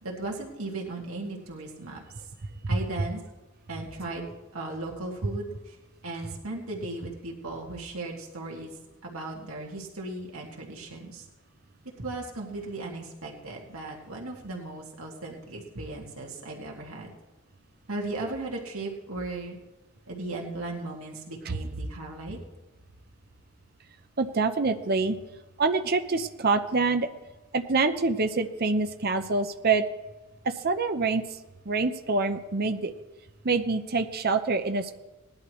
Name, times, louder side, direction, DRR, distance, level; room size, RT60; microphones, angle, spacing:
voice 1, 0.0-2.0 2.7-3.2 3.7-4.2 4.5-5.8 6.0-8.7 9.0-11.2 12.0-17.1 17.9-19.6 20.1-22.4, right 2 dB, 85° right, -1 dB, 2.3 m, -36 dB
voice 2, 24.2-25.2 25.6-27.1 27.5-29.8 30.4-31.2 31.7-32.9 33.4-35.0, right 3 dB, 45° right, 7 dB, 0.8 m, -26 dB
19.0 x 11.5 x 3.2 m, 1.1 s
head